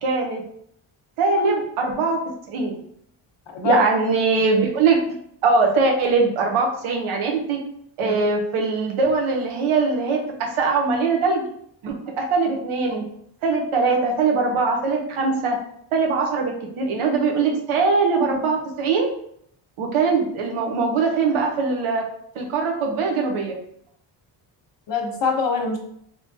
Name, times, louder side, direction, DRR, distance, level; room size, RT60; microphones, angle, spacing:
voice 1, 0.0-0.4 1.2-2.2 2.5-2.7 3.6-5.0 5.4-7.6 8.0-11.4 11.8-13.0 13.4-15.6 15.9-19.1 19.8-22.0 22.3-23.6, right 4 dB, 85° right, 1 dB, 0.9 m, -21 dB
voice 2, 3.5-3.8 8.0-8.2 24.9-25.8, left 5 dB, 60° left, 2 dB, 1.0 m, -23 dB
3.6 x 3.0 x 2.7 m, 0.69 s
cardioid pair, 90°, 48 cm